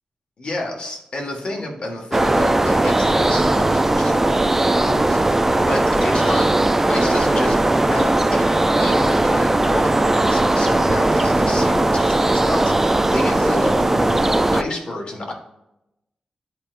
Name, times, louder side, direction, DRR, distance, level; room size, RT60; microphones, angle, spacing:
voice 1, 0.4-6.5 6.9-15.3, left 1 dB, 45° left, 0 dB, 1.6 m, -29 dB
sound 1, 2.1-14.6, right 2 dB, 15° right, 0.3 m, -18 dB
10.0 x 4.5 x 2.5 m, 0.88 s
wide cardioid pair, 135°, 2 cm